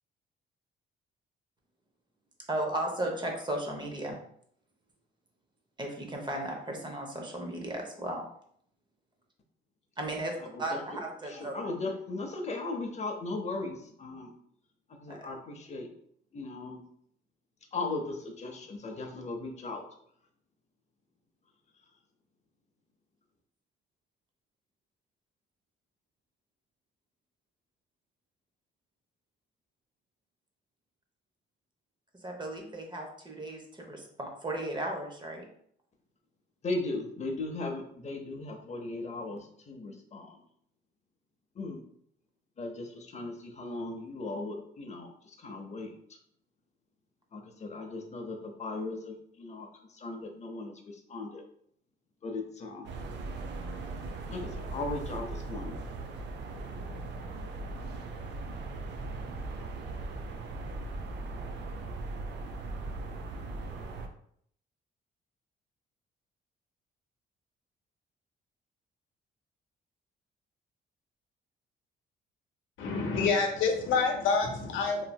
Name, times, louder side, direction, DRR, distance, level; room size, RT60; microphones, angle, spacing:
voice 1, 2.5-4.2 5.8-8.2 10.0-11.5 15.1-15.3 32.2-35.5, right 1 dB, 20° right, 1 dB, 0.7 m, -35 dB
voice 2, 10.4-11.0 11.3-14.3 14.9-15.9 16.3-16.8 17.7-19.8 36.6-40.4 41.5-41.8 42.6-46.2 47.3-51.4 52.2-52.9 54.3-55.8, left 2 dB, 35° left, 3 dB, 0.6 m, -37 dB
sound 1, 52.8-64.1, right 3 dB, 65° right, 0.5 m, -39 dB
voice 3, 72.8-75.1, left 4 dB, 75° left, 2 dB, 0.7 m, -27 dB
3.1 x 2.6 x 2.2 m, 0.66 s
cardioid pair, 90°, 20 cm